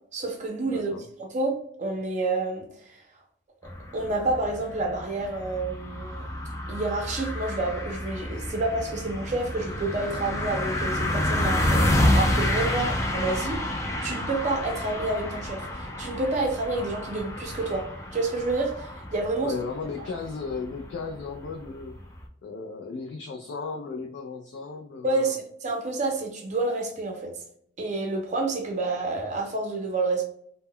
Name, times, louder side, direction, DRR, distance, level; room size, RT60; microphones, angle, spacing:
voice 1, 0.1-0.9 1.2-3.0 3.9-6.3 6.7-13.6 14.0-19.5 25.0-27.3 27.8-30.3, right 2 dB, 40° right, 0.5 m, -29 dB
voice 2, 0.7-1.1 12.8-12.9 19.4-21.9 22.4-25.2, left 4 dB, 90° left, 0.3 m, -35 dB
sound 1, 3.6-22.2, left 1 dB, 15° left, 0.4 m, -29 dB
2.1 x 2.0 x 3.5 m
head